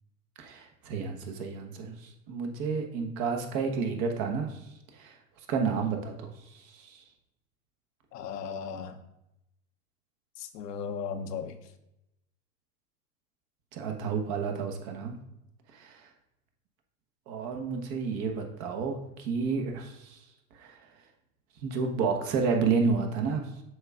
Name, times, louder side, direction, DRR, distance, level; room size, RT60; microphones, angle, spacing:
voice 1, 0.4-5.2 5.5-7.0 13.7-15.2 15.7-16.1 17.3-20.3 20.5-20.9 21.6-23.5, right 5 dB, 45° right, 1.2 m, -31 dB
voice 2, 8.1-9.0 10.4-11.6, left 6 dB, 85° left, 0.8 m, -36 dB
7.8 x 5.6 x 2.4 m
hypercardioid pair, 110°, 47 cm